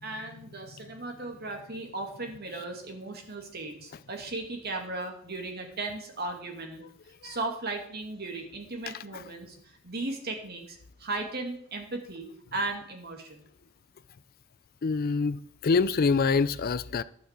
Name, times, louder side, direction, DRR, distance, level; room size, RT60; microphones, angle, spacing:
voice 1, 0.0-6.8 7.2-9.6 9.8-13.4, right 2 dB, 50° right, 2.5 m, -36 dB
voice 2, 14.8-17.0, left 4 dB, 45° left, 0.4 m, -25 dB
11.5 x 6.2 x 8.3 m
head